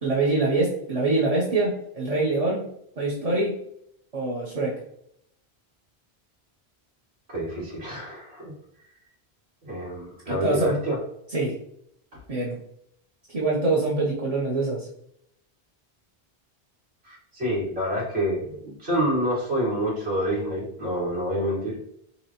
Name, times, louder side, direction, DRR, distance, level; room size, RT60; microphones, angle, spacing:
voice 1, 0.0-2.7 3.0-3.6 4.1-4.8 10.3-10.8 11.3-11.5 12.3-12.6 13.3-14.9, right 2 dB, 40° right, -4 dB, 0.9 m, -24 dB
voice 2, 7.3-8.5 9.6-11.0 12.1-12.2 17.0-21.8, equal, 85° right, -7 dB, 2.1 m, -28 dB
5.7 x 3.0 x 2.9 m, 0.73 s
omnidirectional pair, 1.0 m